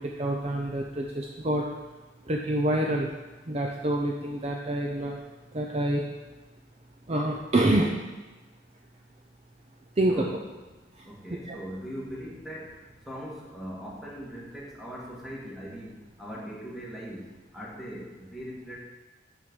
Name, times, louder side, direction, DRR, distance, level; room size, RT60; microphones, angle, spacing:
voice 1, 0.2-1.6 2.3-3.1 3.5-5.2 5.5-6.0 7.1-7.9 10.0-10.3 11.5-11.6, right 1 dB, 35° right, 0 dB, 0.6 m, -26 dB
voice 2, 10.1-10.4 11.1-18.8, equal, ahead, -5 dB, 1.8 m, -40 dB
6.2 x 5.2 x 6.2 m, 1.2 s
head